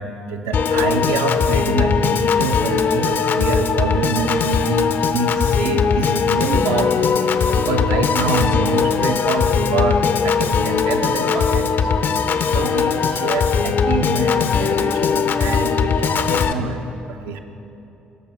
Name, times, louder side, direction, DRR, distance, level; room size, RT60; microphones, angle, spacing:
voice 1, 0.0-7.1 7.5-12.1 12.5-17.4, right 4 dB, 70° right, 6 dB, 0.8 m, -25 dB
Piano / Organ, 0.5-16.5, left 6 dB, 50° left, 0.7 m, -19 dB
18.0 x 7.0 x 6.2 m, 2.9 s
figure-of-eight pair, 45°, 5 cm